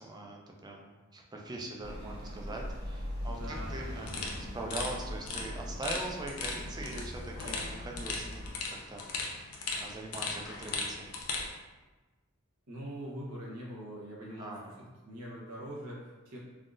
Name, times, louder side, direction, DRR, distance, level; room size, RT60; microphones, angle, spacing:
voice 1, 0.0-4.1 4.5-9.0 9.8-11.1 14.4-14.8, right 2 dB, 20° right, 0 dB, 0.4 m, -42 dB
sound 1, 1.8-8.5, left 1 dB, 45° right, 1.3 m, -41 dB
Fire, 3.0-9.4 10.1-10.2, equal, 70° right, 1.4 m, -52 dB
voice 2, 3.3-4.3 12.7-16.4, right 1 dB, 85° right, -4 dB, 0.9 m, -43 dB
sound 2, 4.0-11.5, left 4 dB, 80° left, 0.5 m, -38 dB
3.5 x 2.4 x 2.5 m, 1.2 s
head